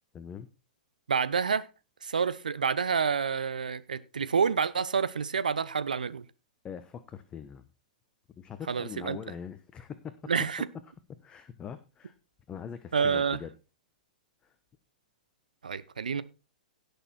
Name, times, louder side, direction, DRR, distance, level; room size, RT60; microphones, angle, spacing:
voice 1, 0.1-0.5 6.6-7.6 8.4-10.1 11.2-12.1 12.5-13.5 14.4-14.5, left 8 dB, 20° left, 1.1 m, -42 dB
voice 2, 1.1-1.7 2.0-6.2 8.7-9.2 10.3-10.7 12.9-13.4 15.6-16.2, right 6 dB, 75° right, 1.0 m, -28 dB
17.0 x 6.7 x 4.3 m
figure-of-eight pair, 105°, 4 cm